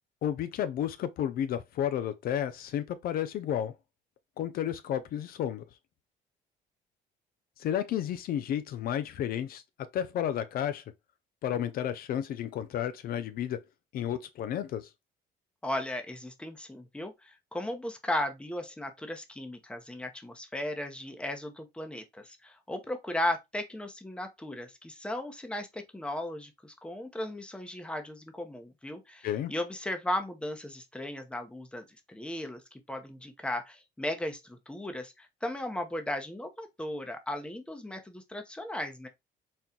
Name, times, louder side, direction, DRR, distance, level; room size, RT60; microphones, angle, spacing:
voice 1, 0.2-3.7 4.4-5.6 7.6-9.6 9.9-10.8 11.4-13.6 13.9-14.9 29.2-29.5, left 10 dB, 60° left, 0.5 m, -32 dB
voice 2, 15.6-39.1, left 1 dB, 5° left, 0.8 m, -36 dB
4.3 x 2.3 x 3.7 m
cardioid pair, 110°, 17 cm